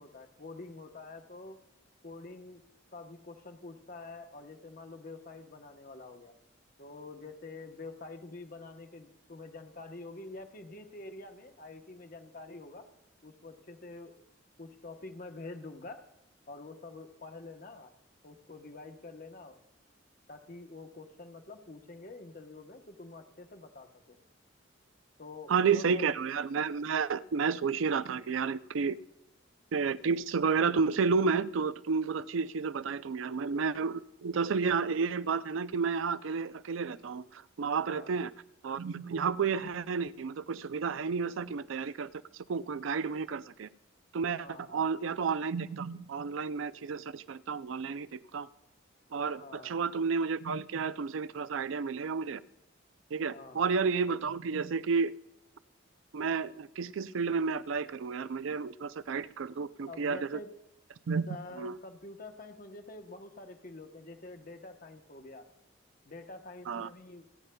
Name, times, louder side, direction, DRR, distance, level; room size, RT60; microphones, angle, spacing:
voice 1, 0.0-1.6 2.0-2.6 2.9-6.3 6.8-12.9 13.2-14.1 14.6-16.1 16.5-17.9 18.2-19.6 20.3-24.2 25.2-26.1 37.8-38.1 44.4-44.8 49.4-49.7 53.3-53.6 59.9-60.5 61.3-65.5 66.0-67.3, left 2 dB, 45° left, 1.0 m, -47 dB
voice 2, 25.5-29.0 29.7-38.3 38.6-42.1 42.5-43.7 44.1-48.5 49.1-52.4 53.1-55.1 56.1-60.4 61.1-61.3 61.6-61.8 66.7-66.9, right 5 dB, 80° right, 0.4 m, -31 dB
28.0 x 9.7 x 2.3 m
head